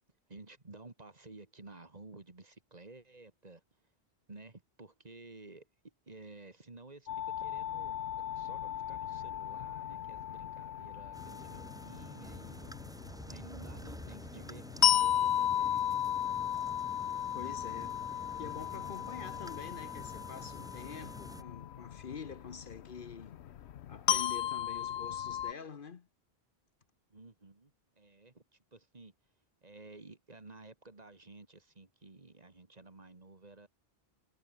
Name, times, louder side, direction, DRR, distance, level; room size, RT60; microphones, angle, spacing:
voice 1, 0.3-3.6 4.3-8.0 8.3-16.0 27.1-29.1 29.6-33.7, right 3 dB, 40° right, 2.0 m, -53 dB
sound 1, 7.1-25.5, left 10 dB, 90° left, 1.0 m, -35 dB
sound 2, 11.1-21.4, equal, 5° right, 3.0 m, -48 dB
voice 2, 17.3-23.4 23.9-26.1, left 6 dB, 55° left, 1.1 m, -46 dB
omnidirectional pair, 1.1 m